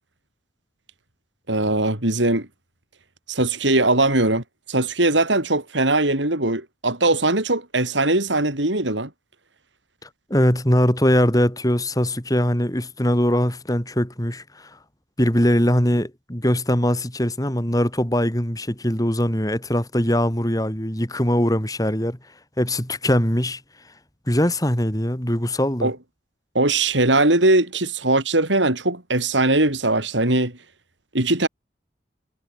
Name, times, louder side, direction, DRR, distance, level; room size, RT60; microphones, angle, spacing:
voice 1, 1.5-2.5 3.3-9.1 25.8-26.0 26.5-30.6 31.1-31.5, right 2 dB, 90° right, 5.7 m, -20 dB
voice 2, 10.3-14.7 15.2-22.2 22.6-23.6 24.3-25.9, equal, 20° left, 3.8 m, -21 dB
head